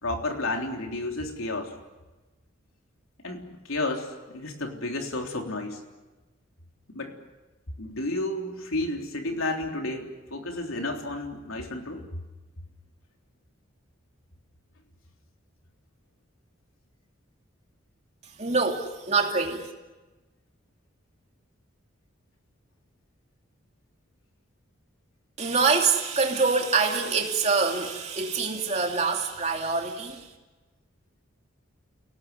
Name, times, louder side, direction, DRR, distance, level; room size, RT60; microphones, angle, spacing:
voice 1, 0.0-1.7 3.2-5.8 6.9-7.2 7.8-12.2, left 2 dB, 85° left, 3.6 m, -32 dB
voice 2, 18.4-19.7 25.4-30.3, right 4 dB, 30° right, 2.8 m, -25 dB
29.5 x 18.0 x 9.6 m
head